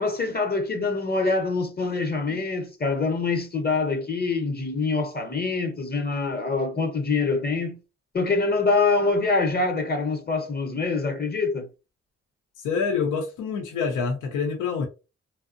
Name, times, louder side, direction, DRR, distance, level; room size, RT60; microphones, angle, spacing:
voice 1, 0.0-7.8 8.1-11.7, left 3 dB, 30° left, 0.7 m, -25 dB
voice 2, 12.6-14.9, left 5 dB, 90° left, 0.5 m, -26 dB
2.6 x 2.0 x 2.4 m
supercardioid pair, 50°, 30 cm